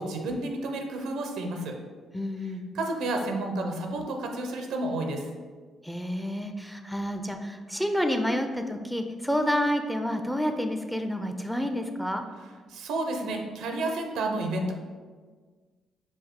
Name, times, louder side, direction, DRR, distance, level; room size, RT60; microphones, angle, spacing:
voice 1, 0.0-1.7 2.7-5.3 12.7-14.7, right 2 dB, 85° right, 3 dB, 0.6 m, -31 dB
voice 2, 2.1-2.6 5.8-12.2, equal, ahead, 5 dB, 0.4 m, -29 dB
5.4 x 2.7 x 3.6 m, 1.5 s
cardioid pair, 90°, 0 cm